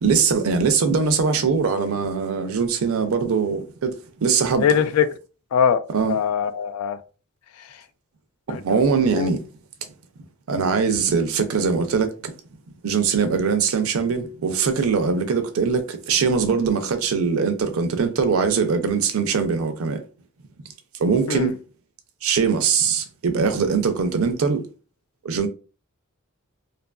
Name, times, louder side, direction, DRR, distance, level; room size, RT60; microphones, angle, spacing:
voice 1, 0.0-4.0 4.2-4.6 5.9-6.2 8.5-9.4 10.5-12.3 12.8-20.0 21.0-21.6 22.2-24.6 25.2-25.5, right 5 dB, 75° right, 0.5 m, -21 dB
voice 2, 4.6-5.1 5.5-5.8 6.1-7.0 8.5-8.6 9.1-9.3 21.3-21.5, left 8 dB, 85° left, 0.3 m, -21 dB
2.7 x 2.4 x 2.2 m
head